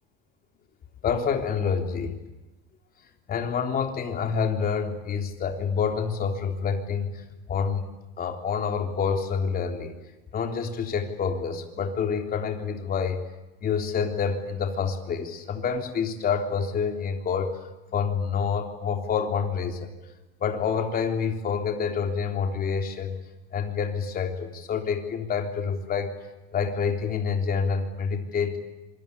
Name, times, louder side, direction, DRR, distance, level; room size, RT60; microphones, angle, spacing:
voice 1, 1.0-2.2 3.3-7.2 7.5-7.8 8.2-10.0 10.3-13.2 13.6-17.5 17.9-19.9 20.4-23.2 23.5-26.1 26.5-28.6, left 6 dB, 30° left, 4 dB, 3.6 m, -27 dB
27.0 x 22.5 x 8.5 m, 1.1 s
supercardioid pair, 140°, 31 cm